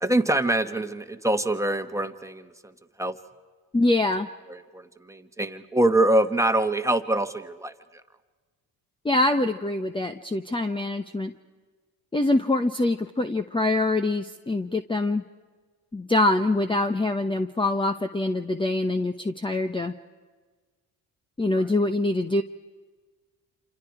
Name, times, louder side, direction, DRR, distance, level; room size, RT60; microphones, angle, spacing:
voice 1, 0.0-2.5 3.0-3.1 4.7-4.8 5.1-7.7, right 1 dB, 5° right, 8 dB, 1.6 m, -24 dB
voice 2, 3.7-4.3 9.0-11.3 12.1-15.2 15.9-19.9 21.4-22.4, left 2 dB, 10° left, 8 dB, 1.0 m, -24 dB
28.0 x 27.5 x 4.9 m, 1.4 s
supercardioid pair, 80°, 41 cm